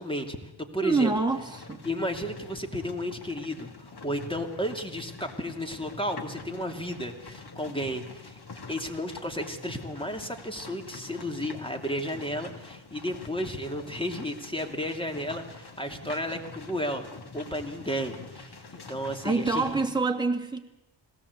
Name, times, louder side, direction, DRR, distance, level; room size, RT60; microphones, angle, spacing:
voice 1, 0.0-1.1 1.8-8.4 8.7-19.8, equal, 10° left, 5 dB, 2.6 m, -33 dB
voice 2, 0.8-1.9 16.0-16.1 19.2-20.6, right 3 dB, 10° right, 3 dB, 2.6 m, -26 dB
sound 1, 1.3-19.9, left 3 dB, 50° left, 2.7 m, -45 dB
22.0 x 17.5 x 8.2 m, 0.94 s
cardioid pair, 75°, 49 cm